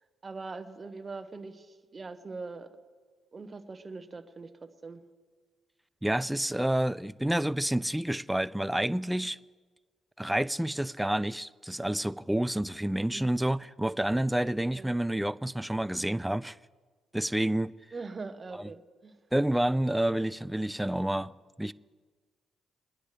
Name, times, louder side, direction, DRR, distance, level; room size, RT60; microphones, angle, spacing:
voice 1, 0.2-2.7 3.3-4.5 4.8-5.0 13.0-13.3 14.7-15.0 17.9-19.2, right 3 dB, 30° right, 1.0 m, -42 dB
voice 2, 6.0-9.4 10.2-16.6 17.1-17.7 18.5-18.7 19.3-21.3 21.6-21.7, right 1 dB, 5° right, 0.3 m, -29 dB
21.5 x 10.0 x 3.3 m
cardioid pair, 90°, 0 cm